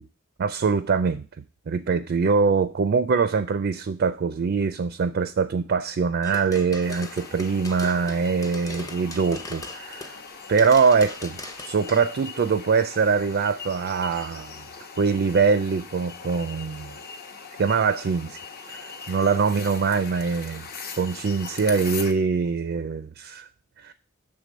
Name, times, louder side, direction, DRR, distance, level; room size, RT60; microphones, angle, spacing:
voice 1, 0.4-1.2 1.7-10.1 10.5-14.6 15.0-16.9 17.6-18.4 18.7-20.7 21.0-23.5 23.8-23.9, right 5 dB, 50° right, 0.4 m, -23 dB
sound 1, 6.2-10.3 10.6-12.0, left 2 dB, 15° left, 0.6 m, -39 dB
Thunderbolts-River, 6.8-22.1, left 5 dB, 45° left, 0.9 m, -41 dB
6.7 x 3.6 x 6.1 m
head